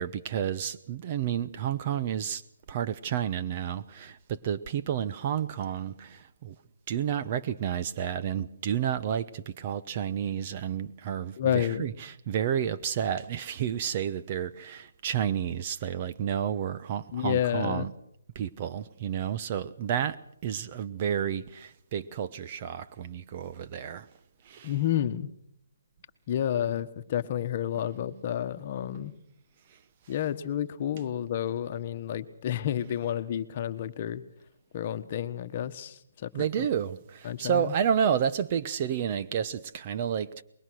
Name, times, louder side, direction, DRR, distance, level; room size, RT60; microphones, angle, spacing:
voice 1, 0.0-2.4 2.7-6.5 6.9-17.9 18.3-24.1 24.4-24.8 30.1-30.2 36.3-40.4, right 9 dB, 35° right, 1.0 m, -31 dB
voice 2, 11.4-11.9 17.1-17.9 24.6-25.3 26.3-29.1 30.1-34.2 34.7-36.3 36.6-36.7 37.2-37.7, left 10 dB, 35° left, 1.4 m, -30 dB
24.5 x 22.0 x 6.4 m
hypercardioid pair, 160°, 0 cm